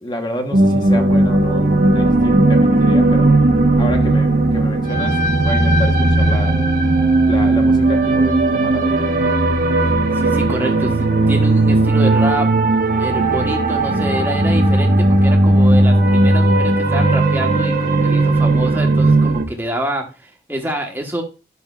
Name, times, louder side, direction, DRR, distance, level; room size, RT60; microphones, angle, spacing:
voice 1, 0.0-3.4 3.8-6.6 7.3-9.2, equal, 25° left, 1.0 m, -29 dB
sound 1, 0.5-19.4, right 2 dB, 50° right, 1.0 m, -15 dB
voice 2, 10.1-21.2, right 1 dB, 10° right, 1.2 m, -26 dB
11.0 x 6.1 x 2.4 m
head